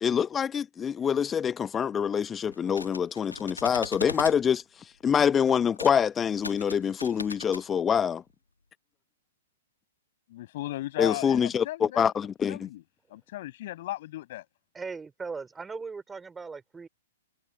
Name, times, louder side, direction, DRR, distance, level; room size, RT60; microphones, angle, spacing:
voice 1, 0.0-4.6 5.0-8.2 11.0-12.7, left 7 dB, 20° left, 1.0 m, -25 dB
sound 1, 2.5-4.4 5.7-6.0 6.3-7.7, left 3 dB, 85° left, 1.9 m, -39 dB
voice 2, 10.3-12.1 12.5-12.8 13.1-14.4, left 15 dB, 50° left, 6.3 m, -36 dB
voice 3, 14.7-16.9, right 4 dB, 10° right, 3.9 m, -38 dB
figure-of-eight pair, 110°, 0 cm